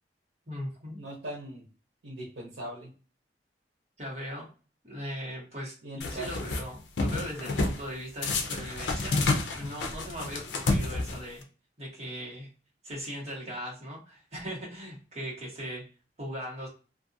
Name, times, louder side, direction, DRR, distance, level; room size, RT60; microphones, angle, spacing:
voice 1, 0.5-1.0 4.0-4.5 4.8-5.7 6.1-9.2 9.5-11.4 11.8-12.5 12.8-15.8 16.2-16.7, equal, 40° right, -4 dB, 1.2 m, -39 dB
voice 2, 1.0-1.7 2.0-2.9 5.8-6.4, right 1 dB, 85° right, -5 dB, 0.9 m, -40 dB
sound 1, 6.0-6.6 7.0-7.8 8.2-11.4, left 3 dB, 90° left, 0.5 m, -29 dB
2.5 x 2.4 x 2.6 m, 0.35 s
head